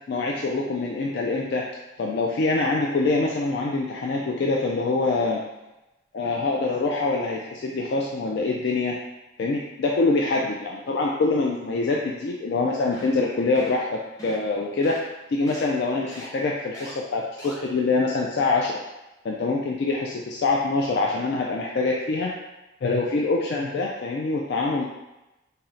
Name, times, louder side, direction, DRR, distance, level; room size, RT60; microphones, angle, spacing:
voice 1, 0.1-1.7 2.0-5.4 6.1-9.0 9.4-15.0 15.3-18.8 19.2-22.3 22.8-24.9, left 3 dB, 55° left, -2 dB, 0.3 m, -25 dB
sound 1, 12.9-13.2 13.6-13.8 14.2-14.5 14.8-15.0 15.5-15.6 16.1-16.3 16.7-16.9 17.4-17.5, equal, 15° left, 0.8 m, -41 dB
4.2 x 2.1 x 3.7 m, 1.0 s
head